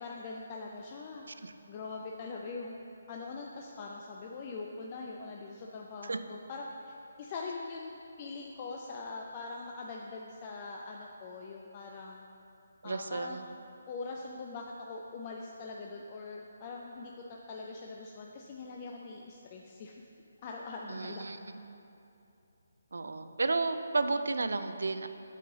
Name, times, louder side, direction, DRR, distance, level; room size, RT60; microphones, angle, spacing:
voice 1, 0.0-1.3 1.7-2.8 3.1-12.3 12.8-13.4 13.9-20.0 20.4-21.3, left 3 dB, 30° left, -1 dB, 0.4 m, -42 dB
voice 2, 12.8-13.5 20.9-21.6 22.9-25.1, right 3 dB, 75° right, 9 dB, 0.4 m, -32 dB
8.3 x 3.9 x 3.8 m, 2.8 s
figure-of-eight pair, 150°, 0 cm